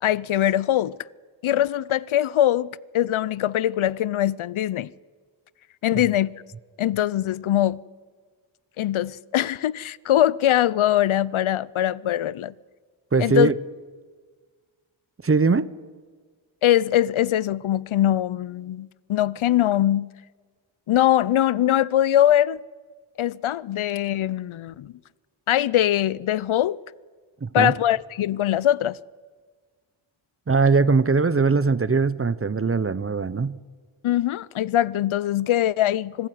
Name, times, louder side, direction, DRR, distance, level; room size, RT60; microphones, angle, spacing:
voice 1, 0.0-1.0 1.4-4.9 5.8-6.3 6.8-7.8 8.8-12.5 13.2-13.5 16.6-20.1 20.9-22.6 23.2-24.9 25.5-26.8 27.5-29.0 34.0-36.3, left 12 dB, 80° left, 0.6 m, -22 dB
voice 2, 13.1-13.5 15.2-15.7 27.4-27.7 30.5-33.6, right 4 dB, 30° right, 0.8 m, -21 dB
25.0 x 14.5 x 9.4 m
wide cardioid pair, 70°, 48 cm